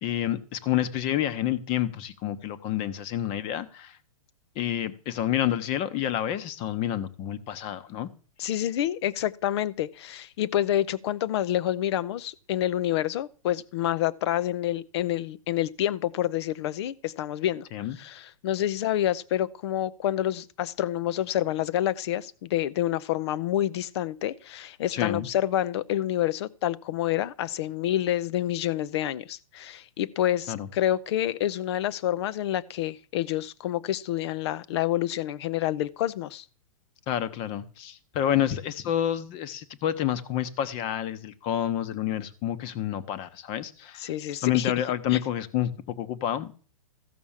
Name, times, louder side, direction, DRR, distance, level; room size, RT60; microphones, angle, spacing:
voice 1, 0.0-4.0 4.5-8.1 17.7-18.0 24.9-25.3 30.5-30.7 37.1-44.1 44.4-46.6, left 11 dB, 30° left, 1.0 m, -29 dB
voice 2, 8.4-17.7 18.0-36.4 44.0-44.7 45.1-45.2, left 12 dB, 45° left, 0.7 m, -28 dB
14.5 x 6.1 x 7.3 m
hypercardioid pair, 150°, 19 cm